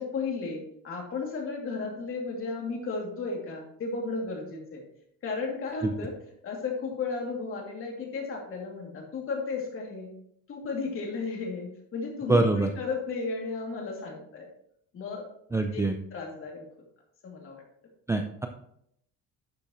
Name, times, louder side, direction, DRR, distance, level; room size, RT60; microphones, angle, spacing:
voice 1, 0.0-4.8 5.2-6.1 6.4-10.1 10.5-14.5 14.9-15.2 15.7-15.8 16.1-16.6 17.2-17.5, left 4 dB, 40° left, 0 dB, 2.8 m, -34 dB
voice 2, 12.3-12.7 15.5-15.9 18.1-18.5, right 2 dB, 10° right, 5 dB, 0.4 m, -24 dB
11.5 x 6.8 x 3.1 m, 0.70 s
cardioid pair, 155°, 32 cm